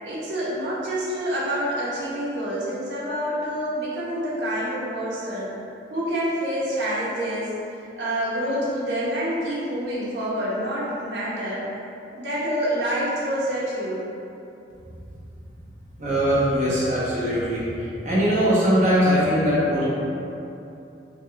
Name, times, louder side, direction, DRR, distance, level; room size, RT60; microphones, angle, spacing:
voice 1, 0.0-5.5 5.9-7.5 8.0-11.6 12.1-14.0, equal, 85° right, -8 dB, 1.2 m, -27 dB
voice 2, 16.0-19.9, equal, 40° right, -9 dB, 1.2 m, -21 dB
5.3 x 2.5 x 3.4 m, 2.8 s
head